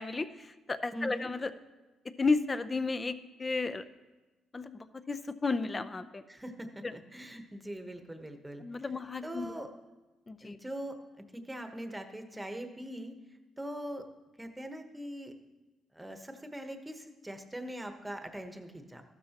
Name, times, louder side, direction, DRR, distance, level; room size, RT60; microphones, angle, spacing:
voice 1, 0.0-1.5 2.2-3.8 4.5-6.2 6.8-6.9 8.6-9.6 10.3-10.6, left 3 dB, 25° left, 12 dB, 0.6 m, -33 dB
voice 2, 0.9-1.3 6.3-8.6 9.2-9.7 10.4-13.2 13.6-14.1 14.4-15.3 15.9-19.0, equal, 10° right, 6 dB, 1.1 m, -42 dB
14.0 x 12.5 x 3.0 m, 1.1 s
cardioid pair, 90°, 0 cm